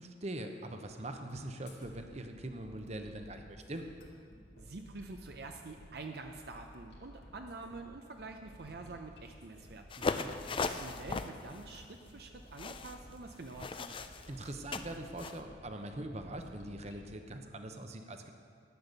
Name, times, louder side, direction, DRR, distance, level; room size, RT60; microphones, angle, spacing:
voice 1, 0.0-3.8 10.0-10.6 14.3-18.3, right 1 dB, 40° right, 6 dB, 0.9 m, -43 dB
sound 1, 1.7-17.1, equal, 65° left, 2.6 m, -55 dB
voice 2, 4.6-9.8 10.6-14.0, right 3 dB, 60° right, 4 dB, 0.7 m, -47 dB
sound 2, 9.9-15.4, left 4 dB, 30° left, 0.4 m, -39 dB
12.0 x 8.9 x 6.7 m, 2.3 s
head